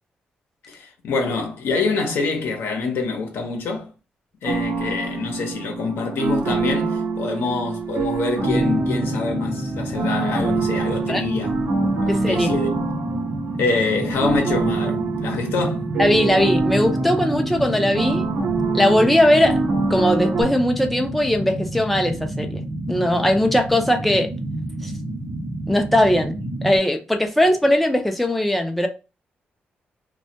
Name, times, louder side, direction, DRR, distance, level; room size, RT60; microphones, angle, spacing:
voice 1, 0.6-3.9 4.4-12.7 13.6-15.8, left 4 dB, 85° left, 0.7 m, -26 dB
sound 1, 4.4-20.4, right 3 dB, 75° right, 0.8 m, -25 dB
sound 2, 8.4-26.8, right 1 dB, 40° right, 0.8 m, -30 dB
voice 2, 12.1-12.5 16.0-18.2 18.7-19.6 19.9-22.6 22.9-24.3 24.8-24.9 25.7-26.3 26.6-28.9, left 1 dB, ahead, 0.4 m, -19 dB
2.2 x 2.1 x 2.6 m
cardioid pair, 100°, 4 cm